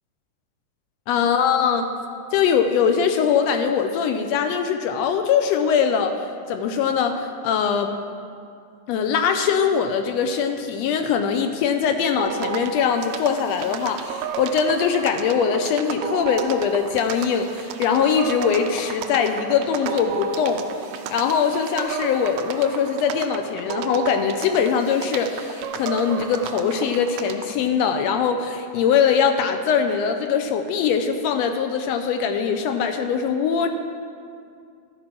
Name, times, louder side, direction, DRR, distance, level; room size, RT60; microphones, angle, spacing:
voice 1, 1.1-1.9 2.3-6.1 6.5-8.0 8.9-20.6 21.1-33.7, left 7 dB, 80° left, 6 dB, 1.5 m, -22 dB
sound 1, 12.2-27.5, right 6 dB, 80° right, 1.8 m, -32 dB
13.0 x 4.6 x 6.0 m, 2.3 s
omnidirectional pair, 3.4 m